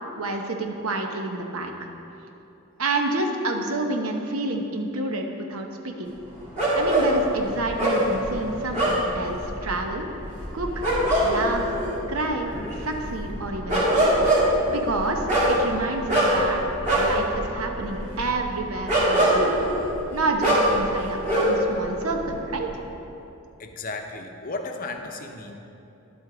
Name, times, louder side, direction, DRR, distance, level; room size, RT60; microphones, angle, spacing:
voice 1, 0.2-1.7 2.8-6.1 6.7-10.1 10.5-10.8 11.2-11.7 12.1-12.5 12.8-14.1 14.7-16.6 16.9-19.5 20.1-22.7, right 2 dB, 85° right, 3 dB, 0.9 m, -29 dB
sound 1, 6.6-21.8 22.0-22.8, right 1 dB, 35° right, 2.4 m, -23 dB
voice 2, 23.6-25.6, left 3 dB, 40° left, 4 dB, 0.7 m, -34 dB
11.0 x 8.0 x 3.9 m, 2.9 s
head